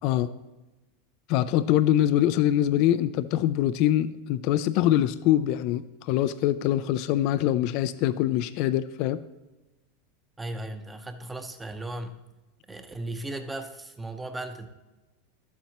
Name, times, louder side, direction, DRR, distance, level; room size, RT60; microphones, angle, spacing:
voice 1, 1.3-9.2, left 12 dB, 55° left, 13 dB, 0.3 m, -24 dB
voice 2, 10.4-12.2 12.7-14.7, right 2 dB, 10° right, 8 dB, 0.7 m, -36 dB
11.5 x 7.2 x 3.0 m, 1.1 s
supercardioid pair, 125°, 0 cm